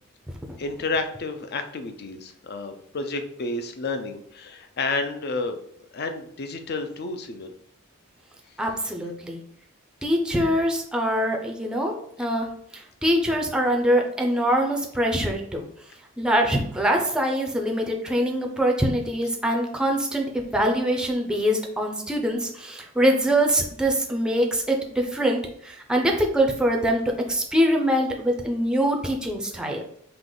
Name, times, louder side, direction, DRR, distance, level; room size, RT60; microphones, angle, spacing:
voice 1, 0.6-5.6 5.9-7.5, left 3 dB, 50° left, 7 dB, 0.5 m, -30 dB
voice 2, 8.6-9.4 10.0-12.5 13.0-15.6 16.2-27.0 27.3-29.8, equal, 5° right, 1 dB, 0.5 m, -23 dB
3.9 x 2.9 x 3.8 m, 0.67 s
head